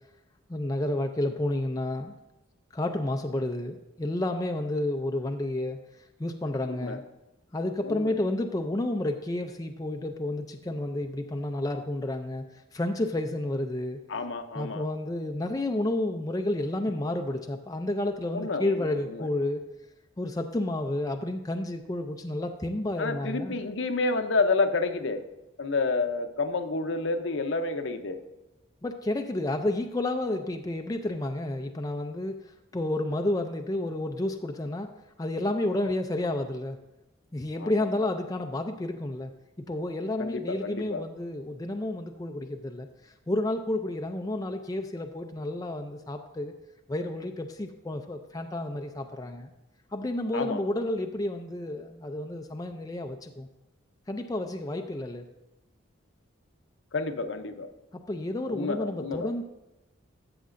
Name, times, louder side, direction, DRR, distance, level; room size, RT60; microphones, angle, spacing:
voice 1, 0.5-2.2 2.7-5.8 6.2-7.0 7.5-14.0 14.5-19.6 20.2-23.6 28.8-32.4 32.7-34.9 35.2-36.8 37.3-39.3 39.7-46.5 46.9-49.5 49.9-53.5 54.1-55.3 58.1-59.4, left 1 dB, 20° left, 4 dB, 0.4 m, -31 dB
voice 2, 6.7-7.0 7.8-8.1 14.1-14.8 18.3-18.7 19.1-19.3 23.0-25.2 25.6-28.2 37.6-37.7 40.2-41.0 50.3-50.6 56.9-57.7 58.5-59.4, left 3 dB, 70° left, 7 dB, 0.7 m, -29 dB
13.5 x 7.3 x 2.6 m, 0.95 s
head